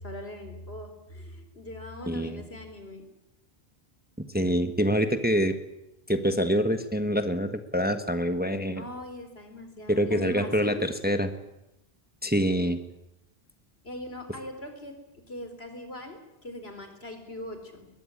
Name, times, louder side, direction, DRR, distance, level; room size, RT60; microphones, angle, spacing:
voice 1, 0.0-3.0 8.8-10.8 13.8-14.9 15.3-17.9, left 1 dB, 75° left, 6 dB, 4.6 m, -41 dB
voice 2, 2.1-2.4 4.3-5.6 6.1-8.8 9.9-11.3 12.2-12.8, equal, 10° right, 8 dB, 1.3 m, -25 dB
21.5 x 21.0 x 9.8 m, 0.90 s
omnidirectional pair, 1.0 m